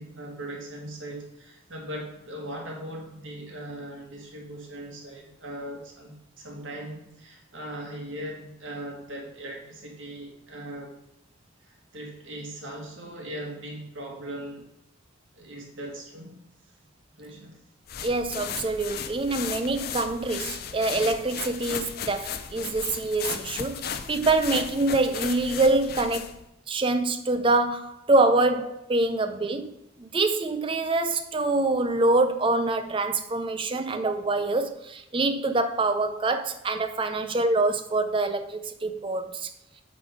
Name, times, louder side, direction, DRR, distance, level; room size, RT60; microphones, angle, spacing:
voice 1, 0.0-10.9 11.6-14.7 15.3-16.4 17.2-17.6, right 1 dB, 70° right, 1.7 m, -39 dB
sound 1, 17.9-26.4, left 7 dB, 50° left, 0.5 m, -36 dB
voice 2, 18.0-26.3 26.7-29.7 30.0-39.5, right 2 dB, 25° right, 0.4 m, -25 dB
7.9 x 4.0 x 4.9 m
head